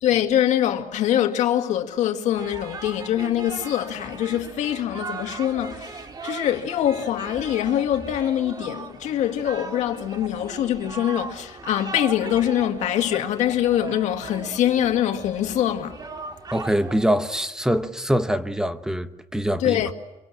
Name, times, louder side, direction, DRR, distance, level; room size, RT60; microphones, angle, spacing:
voice 1, 0.0-16.0 19.6-19.9, left 11 dB, 80° left, 2.0 m, -24 dB
sound 1, 2.3-17.0, right 4 dB, 35° right, 1.9 m, -38 dB
voice 2, 16.5-19.8, equal, 5° right, 1.1 m, -24 dB
26.0 x 23.5 x 8.6 m
cardioid pair, 120°, 12 cm